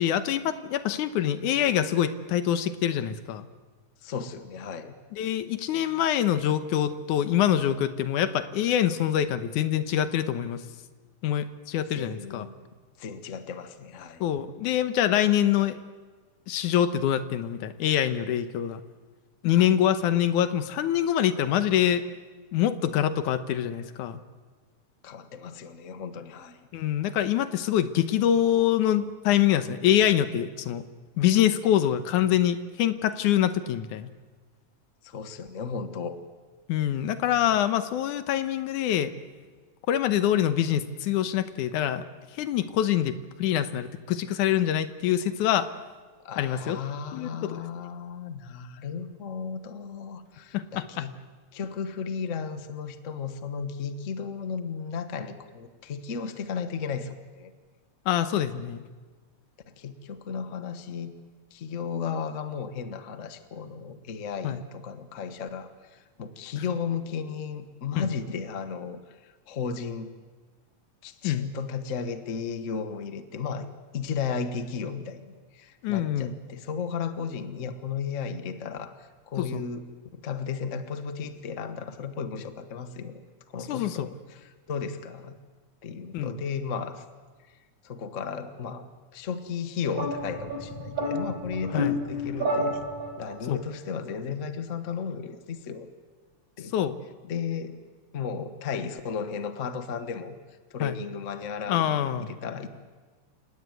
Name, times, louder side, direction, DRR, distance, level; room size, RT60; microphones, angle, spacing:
voice 1, 0.0-3.5 5.1-10.6 11.2-12.5 14.2-15.8 16.5-18.8 19.4-22.1 22.5-24.2 26.7-30.8 31.2-34.1 36.7-39.1 39.9-42.1 42.3-45.7 46.4-46.8 47.1-47.6 50.5-51.1 58.1-58.8 64.4-64.6 66.6-66.7 67.9-68.1 71.2-71.5 75.8-76.4 79.4-79.6 83.6-84.1 86.1-86.4 91.7-91.9 93.5-93.6 96.7-97.0 100.8-101.0 101.7-102.3, left 11 dB, 90° left, 11 dB, 2.5 m, -25 dB
voice 2, 4.0-4.9 11.9-12.5 13.0-14.3 19.5-19.8 25.0-26.6 35.0-36.2 46.2-51.1 51.5-57.5 59.7-61.1 61.5-70.1 71.0-73.7 73.9-79.8 80.1-83.2 83.5-85.4 85.8-87.0 87.8-92.8 93.2-95.9 96.6-96.7 97.2-97.8 98.1-100.3 100.7-102.7, left 6 dB, 60° left, 10 dB, 0.7 m, -34 dB
sound 1, 89.9-93.4, equal, 55° right, 5.5 m, -30 dB
29.0 x 18.0 x 9.4 m, 1.4 s
omnidirectional pair, 3.4 m